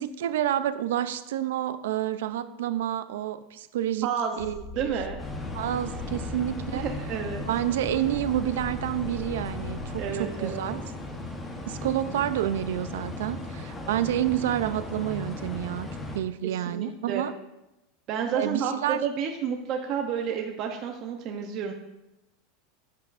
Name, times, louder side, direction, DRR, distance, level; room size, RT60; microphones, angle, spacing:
voice 1, 0.0-4.1 4.4-4.6 5.5-6.8 7.5-10.8 11.7-15.9 16.1-17.3 18.3-19.0, right 12 dB, 90° right, 13 dB, 0.5 m, -29 dB
voice 2, 4.0-4.4 4.7-5.2 6.7-7.5 10.0-10.6 16.4-17.2 18.1-18.7 19.0-21.7, right 7 dB, 40° right, 2 dB, 0.7 m, -30 dB
sound 1, 4.4-10.0, left 4 dB, 80° left, 1.1 m, -41 dB
sound 2, 5.2-16.2, left 2 dB, 15° left, 1.0 m, -37 dB
10.5 x 7.5 x 2.5 m, 0.94 s
supercardioid pair, 150°, 0 cm